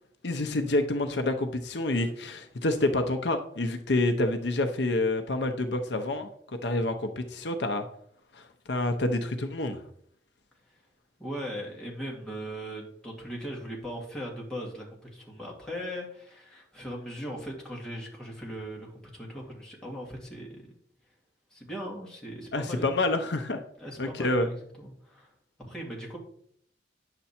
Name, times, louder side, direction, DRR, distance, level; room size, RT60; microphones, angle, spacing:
voice 1, 0.2-6.3 6.6-7.8 8.3-8.4 8.7-9.8 22.5-23.6 24.0-24.5, left 2 dB, 65° left, 6 dB, 0.7 m, -28 dB
voice 2, 11.2-20.7 21.5-23.0 23.8-25.3 25.6-26.2, equal, 5° left, -3 dB, 2.3 m, -39 dB
9.6 x 6.8 x 4.3 m, 0.66 s
head